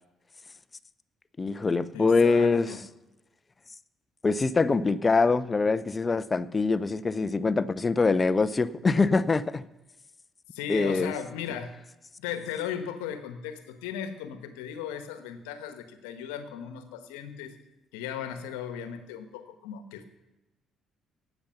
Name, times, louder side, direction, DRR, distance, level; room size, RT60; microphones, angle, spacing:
voice 1, 1.4-2.7 4.2-9.6 10.7-11.1, left 4 dB, 30° left, 15 dB, 0.6 m, -24 dB
voice 2, 1.9-2.8 10.5-11.7 12.2-17.5 17.9-20.1, left 8 dB, 75° left, 9 dB, 1.1 m, -37 dB
17.0 x 7.0 x 5.7 m, 1.0 s
hypercardioid pair, 50°, 0 cm